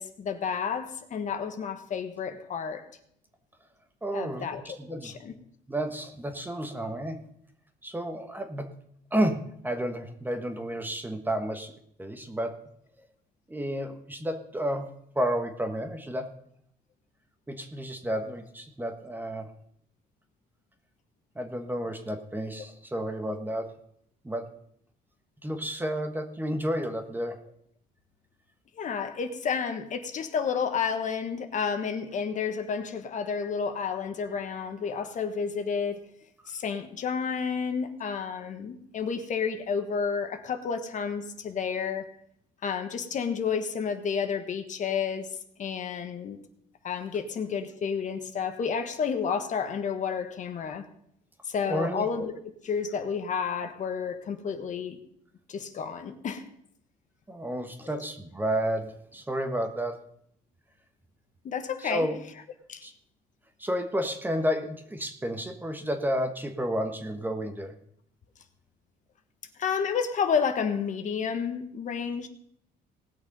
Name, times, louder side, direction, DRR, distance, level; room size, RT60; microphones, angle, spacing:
voice 1, 0.0-2.9 4.1-5.3 28.8-36.0 36.5-42.1 42.6-45.3 45.6-46.4 46.8-50.8 51.4-52.4 52.6-55.0 55.5-56.4 57.8-58.0 61.4-62.1 62.7-62.9 69.6-72.3, left 6 dB, 45° left, 1.3 m, -31 dB
voice 2, 4.0-5.1 5.7-7.2 7.8-8.7 9.1-11.7 12.0-12.6 13.5-14.9 15.1-16.3 17.5-19.5 21.3-23.7 24.2-24.5 25.4-27.4 51.7-52.1 57.3-60.0 61.8-62.2 62.8-62.9 63.6-67.7, equal, 10° right, 1.3 m, -31 dB
19.0 x 6.4 x 5.4 m
cardioid pair, 110°, 17 cm